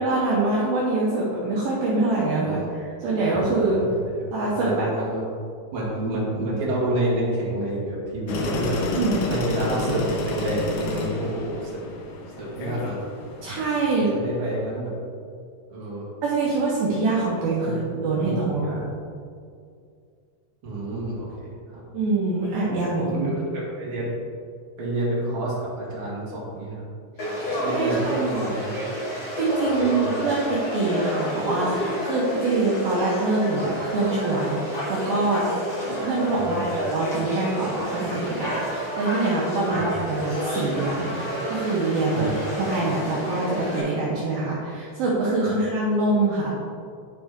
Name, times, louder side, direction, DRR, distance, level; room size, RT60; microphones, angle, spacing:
voice 1, 0.0-3.8 4.3-4.9 8.9-9.2 13.4-14.2 16.2-18.8 21.9-23.4 27.2-28.5 29.0-35.6 35.9-46.5, right 2 dB, 70° right, -6 dB, 2.5 m, -25 dB
voice 2, 4.0-5.2 5.7-8.8 9.3-11.8 12.4-13.0 14.0-14.9 15.7-16.1 17.6-17.9 18.2-18.8 20.6-21.8 23.0-24.2 24.8-26.8 27.6-28.8 29.6-30.4 36.4-36.7 39.7-40.2 42.1-42.6 45.4-45.5, right 1 dB, 40° right, -7 dB, 2.1 m, -29 dB
sound 1, 8.3-13.9, left 2 dB, 75° left, 2.1 m, -30 dB
Conversation / Crowd, 27.2-43.8, equal, 40° left, 2.0 m, -30 dB
10.0 x 5.0 x 3.6 m, 2.3 s
omnidirectional pair, 4.8 m